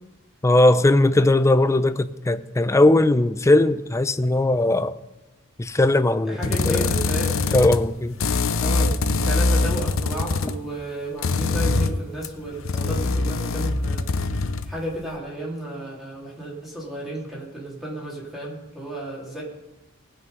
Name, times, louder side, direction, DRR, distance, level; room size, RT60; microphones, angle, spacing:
voice 1, 0.4-5.0 5.6-6.9 7.5-8.2, left 2 dB, 15° left, 0.4 m, -19 dB
voice 2, 6.3-7.4 8.6-19.4, right 1 dB, ahead, 2.8 m, -33 dB
sound 1, 6.4-7.9 8.2-10.6 11.2-14.8, left 3 dB, 80° left, 0.6 m, -23 dB
19.0 x 6.4 x 5.3 m
head